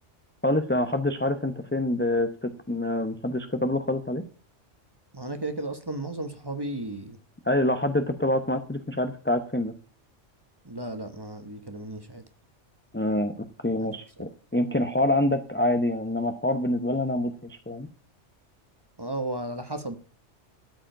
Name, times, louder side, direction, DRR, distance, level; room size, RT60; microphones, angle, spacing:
voice 1, 0.4-4.2 7.4-9.7 12.9-17.9, left 1 dB, 10° left, 8 dB, 0.7 m, -26 dB
voice 2, 5.1-7.2 10.6-12.2 13.8-14.3 19.0-19.9, right 2 dB, 20° right, 8 dB, 1.2 m, -34 dB
13.0 x 5.0 x 9.0 m, 0.41 s
omnidirectional pair, 1.2 m